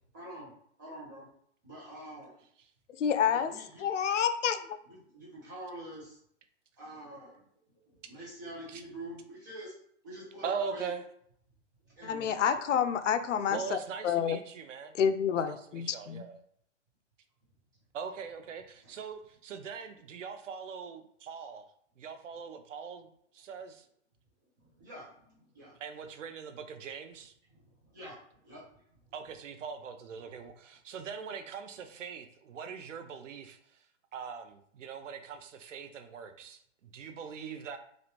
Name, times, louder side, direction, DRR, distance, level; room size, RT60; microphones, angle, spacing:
voice 1, 0.1-0.5 0.8-1.3 1.6-2.4 3.2-3.9 4.9-6.2 6.8-7.4 7.9-9.7 10.0-10.9 11.8-12.8 13.1-13.7 18.8-18.9 24.6-25.8 27.5-28.8, right 1 dB, 15° right, -7 dB, 0.7 m, -46 dB
voice 2, 3.0-3.5 3.8-4.8 12.0-13.8 14.0-14.4 15.0-16.3, left 8 dB, 80° left, 10 dB, 0.5 m, -28 dB
voice 3, 10.4-11.0 13.5-14.9 15.5-16.4 17.9-21.7 22.0-23.1 23.3-23.9 25.8-27.3 29.1-33.6 34.1-37.8, right 6 dB, 90° right, 8 dB, 0.6 m, -41 dB
3.2 x 2.5 x 2.9 m, 0.66 s
hypercardioid pair, 180°, 36 cm